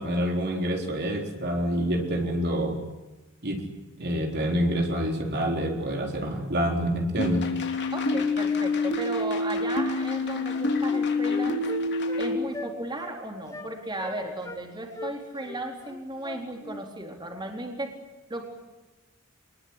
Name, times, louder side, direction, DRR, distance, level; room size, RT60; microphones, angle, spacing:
voice 1, 0.0-2.8 3.4-3.6 4.0-7.4, equal, 50° right, 1 dB, 4.1 m, -27 dB
sound 1, 7.2-12.4, left 3 dB, 55° left, 3.0 m, -27 dB
voice 2, 7.9-11.6 12.2-18.0 18.3-18.5, right 1 dB, 20° right, 2 dB, 4.1 m, -35 dB
Wind instrument woodwind instrument, 10.5-12.3 12.5-12.7 13.0-13.2 13.5-13.7 14.0-14.6 14.9-16.8, left 2 dB, 15° left, 3.6 m, -39 dB
25.0 x 21.5 x 10.0 m, 1.1 s
head